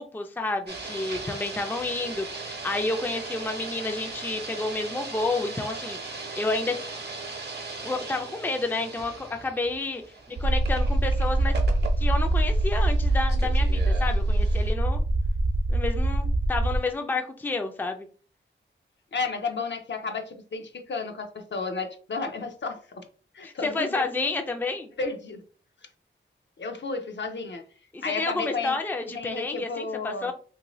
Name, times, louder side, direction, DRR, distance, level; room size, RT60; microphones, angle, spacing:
voice 1, 0.0-6.8 7.8-10.0 10.3-11.5 12.0-15.0 15.7-18.1 23.4-24.9 27.9-30.3, left 3 dB, 10° left, 0.4 m, -30 dB
sound 1, 0.7-14.7, right 3 dB, 55° right, 0.8 m, -39 dB
sound 2, 10.4-16.8, right 1 dB, 85° right, 0.7 m, -23 dB
voice 2, 19.1-23.0 23.3-24.0 25.0-25.4 26.6-27.6 28.0-28.8 29.1-30.3, left 4 dB, 60° left, 0.6 m, -32 dB
3.0 x 2.6 x 3.0 m
wide cardioid pair, 80°, 21 cm